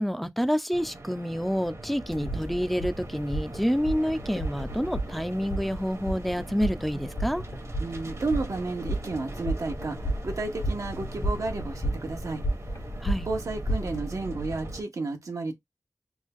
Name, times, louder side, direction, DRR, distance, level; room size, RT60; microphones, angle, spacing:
voice 1, 0.0-7.4 13.0-13.3, equal, ahead, 0.4 m, -28 dB
sound 1, 0.7-14.8, right 2 dB, 60° right, 1.1 m, -41 dB
sound 2, 2.1-14.0, right 1 dB, 90° left, 1.4 m, -33 dB
voice 2, 7.8-12.4 13.2-15.5, right 3 dB, 85° right, 1.0 m, -32 dB
3.6 x 2.3 x 3.5 m
wide cardioid pair, 70°, 5 cm